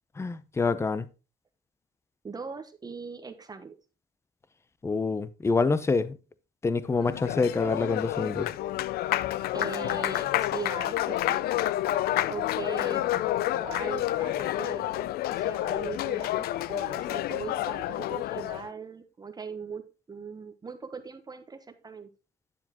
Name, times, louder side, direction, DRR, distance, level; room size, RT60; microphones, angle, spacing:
voice 1, 0.2-1.1 4.8-6.2 6.6-8.5, left 4 dB, 15° left, 0.6 m, -26 dB
voice 2, 2.2-3.7 9.5-11.4 12.3-19.8 20.1-22.1, right 5 dB, 25° right, 0.9 m, -40 dB
Applause, 6.9-18.7, left 14 dB, 65° left, 0.4 m, -29 dB
9.9 x 7.0 x 2.9 m
cardioid pair, 110°, 17 cm